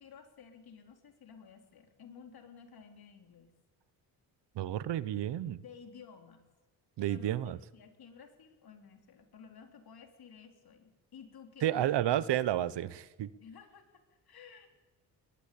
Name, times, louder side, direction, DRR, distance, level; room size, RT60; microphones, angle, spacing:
voice 1, 0.0-3.5 5.6-6.4 7.0-11.9 13.4-14.7, left 6 dB, 60° left, 5 dB, 3.9 m, -54 dB
voice 2, 4.5-5.6 7.0-7.6 11.6-13.3, right 12 dB, 80° right, 17 dB, 1.1 m, -31 dB
21.5 x 20.0 x 8.6 m, 1.2 s
cardioid pair, 100°, 41 cm